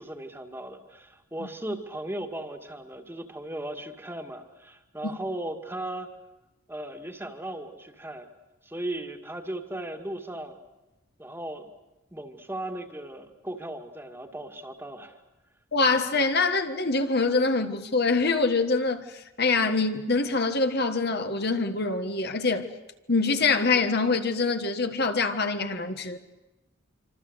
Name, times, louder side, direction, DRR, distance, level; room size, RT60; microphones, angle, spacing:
voice 1, 0.0-6.1 6.7-8.3 8.6-10.6 11.2-11.7 12.1-15.2, right 1 dB, 10° right, 2.0 m, -37 dB
voice 2, 15.7-22.7 23.1-26.2, left 3 dB, 50° left, 1.6 m, -25 dB
26.0 x 26.0 x 8.1 m
head